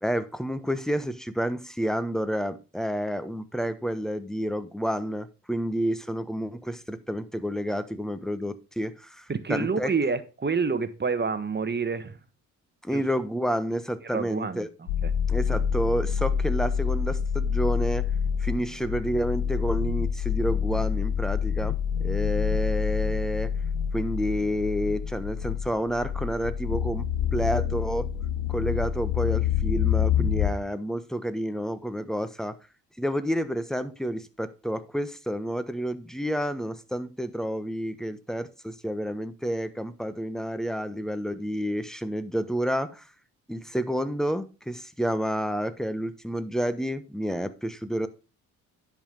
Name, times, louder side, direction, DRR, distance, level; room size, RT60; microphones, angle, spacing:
voice 1, 0.0-9.9 12.8-14.7 15.3-18.1 18.4-23.5 23.9-27.1 27.3-28.1 28.5-32.5 33.0-43.1 43.5-48.1, equal, ahead, 1.1 m, -29 dB
voice 2, 9.3-12.2 12.9-13.0 14.0-15.1, right 5 dB, 25° right, 1.4 m, -28 dB
sound 1, 14.9-30.5, left 7 dB, 85° left, 1.3 m, -27 dB
10.5 x 5.2 x 5.2 m
hypercardioid pair, 55°, 42 cm